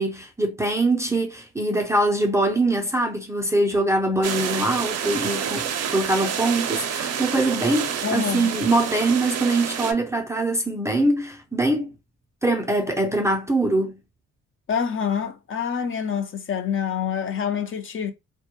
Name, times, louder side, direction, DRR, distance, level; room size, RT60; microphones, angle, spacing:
voice 1, 0.0-11.9 12.4-14.0, right 2 dB, 10° right, 0.5 m, -23 dB
sound 1, 4.2-9.9, right 8 dB, 55° right, 0.5 m, -28 dB
voice 2, 8.0-8.5 14.7-18.1, left 7 dB, 45° left, 0.5 m, -26 dB
2.2 x 2.0 x 2.9 m
cardioid pair, 90°, 30 cm